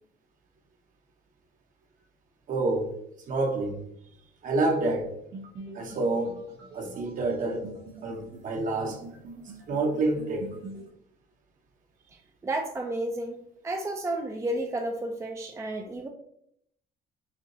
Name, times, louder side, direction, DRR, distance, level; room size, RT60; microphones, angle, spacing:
voice 1, 2.5-2.9 3.3-3.9 4.4-5.1 5.7-6.4 6.7-7.7 8.0-9.0 9.7-10.5, right 2 dB, 50° right, 1.0 m, -28 dB
sound 1, 5.3-10.9, right 3 dB, 85° right, 1.4 m, -44 dB
voice 2, 12.4-13.4 13.6-16.1, right 1 dB, 15° right, 0.4 m, -31 dB
5.9 x 2.8 x 3.0 m
cardioid pair, 110°, 17 cm